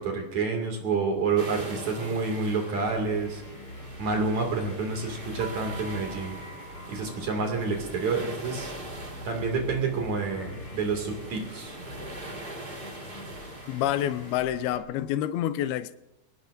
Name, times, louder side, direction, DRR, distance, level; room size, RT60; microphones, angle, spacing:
voice 1, 0.0-3.4 4.0-6.4 6.9-8.7 9.3-11.8, right 4 dB, 50° right, 3.6 m, -28 dB
sound 1, 1.3-14.4, right 1 dB, 35° right, 0.9 m, -42 dB
sound 2, 2.8-14.8, left 1 dB, 30° left, 2.9 m, -45 dB
sound 3, 5.4-8.1, right 8 dB, 90° right, 2.9 m, -46 dB
voice 2, 13.7-16.0, left 12 dB, 85° left, 2.5 m, -28 dB
23.5 x 18.5 x 2.7 m
omnidirectional pair, 4.4 m